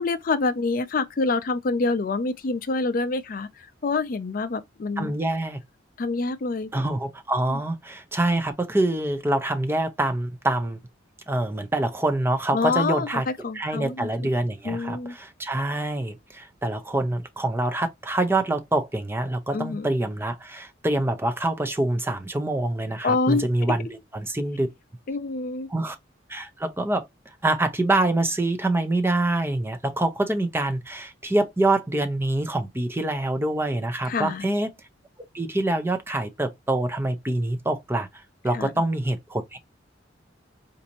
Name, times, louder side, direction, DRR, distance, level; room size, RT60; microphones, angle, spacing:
voice 1, 0.0-5.2 6.0-6.7 7.5-7.6 12.5-14.3 14.6-15.2 19.5-19.9 23.0-23.4 25.1-25.7 34.1-34.5 38.5-38.7, left 3 dB, 45° left, 0.4 m, -26 dB
voice 2, 5.0-5.6 6.7-10.8 11.3-13.2 13.5-24.7 25.7-26.0 26.3-27.1 27.4-34.7 35.3-39.6, right 2 dB, 10° right, 0.5 m, -25 dB
4.1 x 2.6 x 2.8 m
head